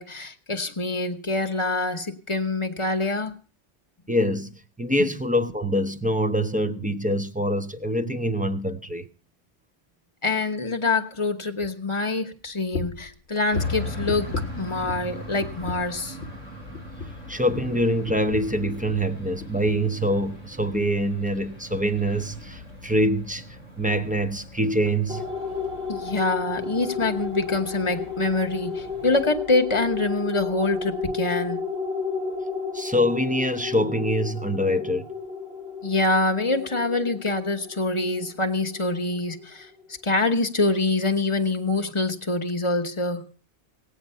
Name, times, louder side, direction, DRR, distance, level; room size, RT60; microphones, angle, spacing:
voice 1, 0.0-3.3 5.0-5.1 10.2-16.2 25.9-31.7 35.8-39.7 40.0-43.2, left 2 dB, 25° left, 1.1 m, -25 dB
voice 2, 4.1-4.5 4.8-9.1 17.3-23.5 23.8-25.3 32.7-35.1, equal, 10° right, 0.6 m, -24 dB
sound 1, 12.7-13.1 13.5-15.1 15.4-15.9 16.2-16.5 16.7-19.1 19.4-19.9 20.2-20.4 20.7-20.9, left 4 dB, 60° left, 1.1 m, -36 dB
sound 2, 13.5-29.3, left 1 dB, 90° right, 4.3 m, -39 dB
sound 3, 25.1-39.9, left 5 dB, 55° right, 2.2 m, -33 dB
17.0 x 9.0 x 5.6 m
omnidirectional pair, 1.2 m